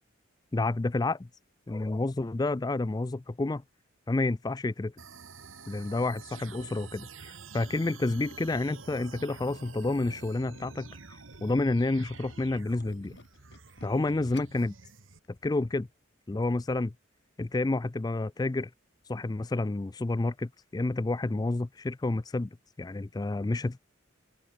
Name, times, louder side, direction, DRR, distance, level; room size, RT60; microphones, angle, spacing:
voice 1, 0.5-1.3 1.7-3.6 4.1-4.9 5.7-10.9 11.4-13.1 13.8-14.7 15.4-15.9 16.3-16.9 17.4-18.7 19.1-22.5 22.8-23.8, left 2 dB, 20° left, 0.4 m, -29 dB
sound 1, 5.0-15.2, right 4 dB, 85° right, 1.7 m, -48 dB
Tools, 5.8-10.8 11.2-14.7 15.1-15.3 15.6-15.7, left 2 dB, 60° left, 5.2 m, -56 dB
open air
head